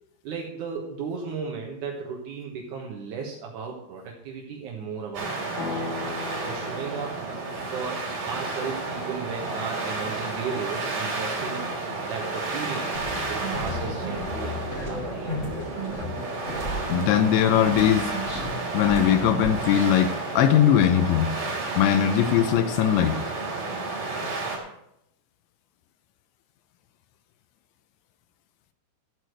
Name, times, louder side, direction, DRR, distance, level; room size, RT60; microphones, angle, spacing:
voice 1, 0.2-5.9 6.3-7.2 7.7-11.7 12.0-12.9 13.3-15.4, right 5 dB, 75° right, -1 dB, 1.8 m, -35 dB
sound 1, 5.1-24.6, right 3 dB, 50° right, 4.1 m, -32 dB
sound 2, 5.6-9.7, left 3 dB, 50° left, 4.3 m, -39 dB
sound 3, 12.9-17.4 17.6-20.0, equal, 20° left, 2.4 m, -34 dB
voice 2, 16.9-18.1 18.7-21.3 21.8-23.2, left 10 dB, 80° left, 10 dB, 2.8 m, -20 dB
13.0 x 4.8 x 7.8 m, 0.80 s
omnidirectional pair, 5.5 m